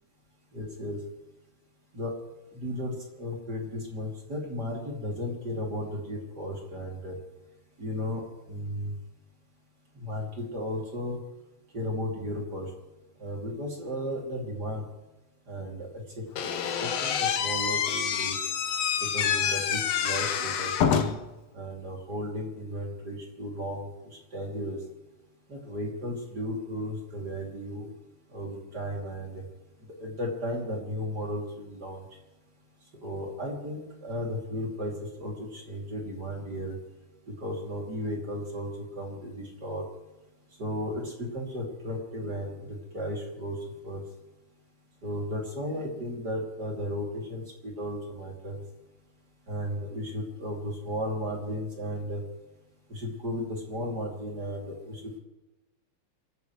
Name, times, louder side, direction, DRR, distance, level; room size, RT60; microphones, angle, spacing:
voice 1, 0.5-1.0 1.9-2.1 2.5-7.2 7.8-8.9 9.9-11.2 11.7-12.7 13.2-14.9 15.5-16.5 16.8-18.4 19.0-20.7 21.5-24.8 25.5-27.9 28.3-29.4 30.0-32.0 33.0-36.8 37.4-39.8 40.6-43.6 43.8-44.0 45.0-48.6 49.5-52.2 52.9-55.2, equal, 30° right, -1 dB, 3.1 m, -35 dB
Slam / Squeak, 16.4-21.3, left 8 dB, 65° left, 1.9 m, -27 dB
27.5 x 14.5 x 3.2 m, 1.0 s
omnidirectional pair, 3.6 m